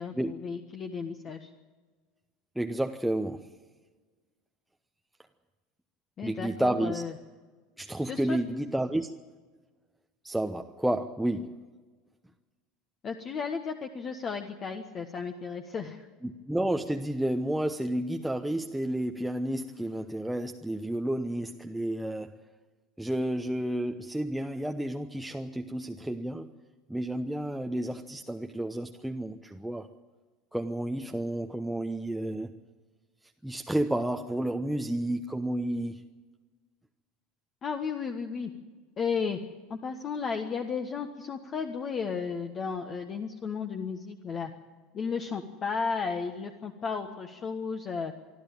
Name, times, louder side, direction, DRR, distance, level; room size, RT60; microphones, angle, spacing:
voice 1, 0.0-1.5 6.2-7.1 7.9-8.4 13.0-16.1 37.6-38.5 39.0-39.4 39.7-44.5 44.9-48.1, left 5 dB, 35° left, 5 dB, 1.4 m, -34 dB
voice 2, 2.5-3.5 6.2-7.0 7.8-9.1 10.2-11.6 16.2-22.4 23.0-26.5 26.9-29.9 30.5-32.5 33.4-36.0, right 1 dB, 5° right, 4 dB, 0.9 m, -31 dB
25.0 x 13.0 x 9.0 m, 1.4 s
figure-of-eight pair, 75°, 0 cm